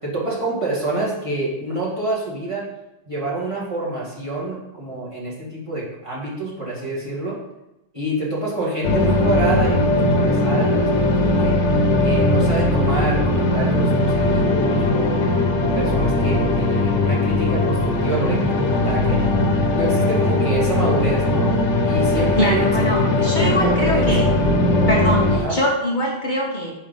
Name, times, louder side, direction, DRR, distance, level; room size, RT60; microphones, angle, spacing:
voice 1, 0.0-2.7 3.1-7.4 7.9-10.9 11.2-11.6 12.0-15.2 15.7-19.2 19.7-21.5 21.8-24.3 25.4-25.6, right 2 dB, 25° right, -6 dB, 2.0 m, -27 dB
sound 1, 8.8-25.4, left 2 dB, 80° left, 1.1 m, -19 dB
voice 2, 22.4-24.3 24.9-26.7, equal, 45° left, -1 dB, 1.0 m, -23 dB
5.4 x 5.0 x 5.3 m, 0.91 s
omnidirectional pair, 1.2 m